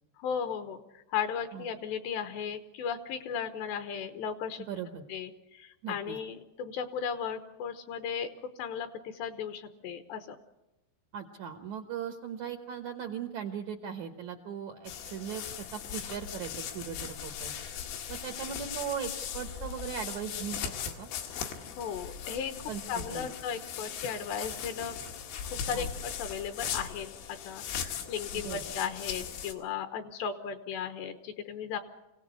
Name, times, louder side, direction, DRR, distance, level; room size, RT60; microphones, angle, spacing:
voice 1, 0.2-4.7 5.1-10.4 21.8-22.5 22.9-25.0 25.4-31.8, left 7 dB, 75° left, 8 dB, 3.1 m, -36 dB
voice 2, 4.7-5.0 5.8-6.2 11.1-17.5 18.1-20.7 21.0-21.1 22.7-23.3 25.7-25.9 28.3-28.6, right 8 dB, 80° right, 6 dB, 1.6 m, -38 dB
sound 1, 14.9-29.5, left 8 dB, 90° left, 4.3 m, -39 dB
26.5 x 17.5 x 8.2 m, 0.95 s
omnidirectional pair, 5.4 m